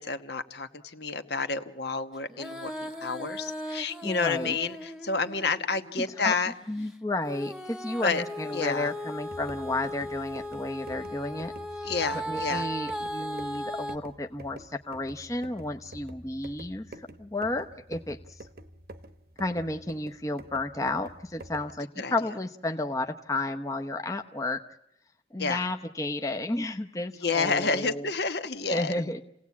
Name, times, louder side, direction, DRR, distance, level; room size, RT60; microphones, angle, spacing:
voice 1, 0.0-6.5 8.0-8.2 8.5-8.9 11.8-12.7 22.0-22.1 25.4-25.6 27.2-29.0, left 4 dB, 65° left, 8 dB, 1.4 m, -30 dB
Female singing, 2.3-6.0 7.2-14.0, equal, 5° right, 1.2 m, -37 dB
voice 2, 4.0-4.6 6.2-6.3 6.7-11.9 12.3-18.4 19.4-24.6 25.3-28.1 28.7-29.2, left 2 dB, 20° left, 5 dB, 0.8 m, -32 dB
sound 1, 9.2-21.8, right 1 dB, 55° right, 1.1 m, -48 dB
29.0 x 17.5 x 8.5 m, 0.83 s
head